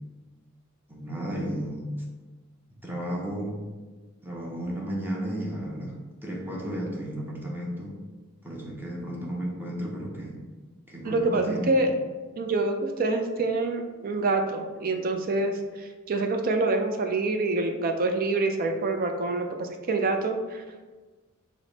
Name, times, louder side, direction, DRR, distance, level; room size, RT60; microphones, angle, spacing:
voice 1, 0.9-1.9 2.8-3.6 4.2-8.0 8.4-10.4 10.9-11.8, equal, 10° right, -2 dB, 0.7 m, -33 dB
voice 2, 11.0-11.9 12.4-20.6, right 2 dB, 45° right, 6 dB, 0.4 m, -26 dB
4.9 x 2.0 x 3.9 m, 1.3 s
head